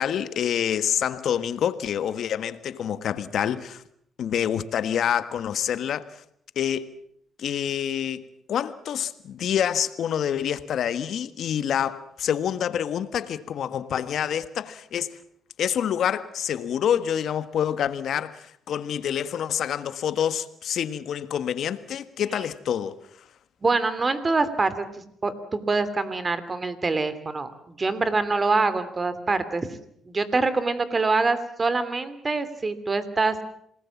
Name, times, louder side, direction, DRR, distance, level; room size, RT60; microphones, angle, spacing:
voice 1, 0.0-3.8 4.2-6.2 6.5-7.0 7.4-8.2 8.5-15.2 15.6-23.0, left 9 dB, 65° left, 1.5 m, -27 dB
voice 2, 23.6-29.7 30.0-33.4, right 3 dB, 30° right, 2.9 m, -25 dB
27.5 x 20.0 x 7.3 m
cardioid pair, 90°, 0 cm